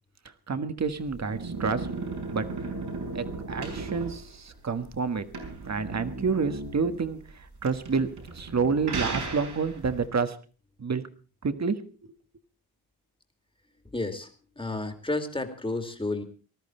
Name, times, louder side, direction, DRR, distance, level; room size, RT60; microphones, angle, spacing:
voice 1, 0.5-1.9 2.3-2.5 3.1-5.2 5.6-8.1 8.3-10.4 10.8-11.0 11.4-11.8, right 5 dB, 45° right, 10 dB, 1.5 m, -28 dB
sound 1, 0.8-10.0, right 3 dB, 80° right, 5.5 m, -36 dB
voice 2, 13.9-14.3 14.6-16.2, left 2 dB, 15° left, 7 dB, 2.3 m, -31 dB
19.5 x 13.5 x 4.4 m, 0.37 s
wide cardioid pair, 105°, 39 cm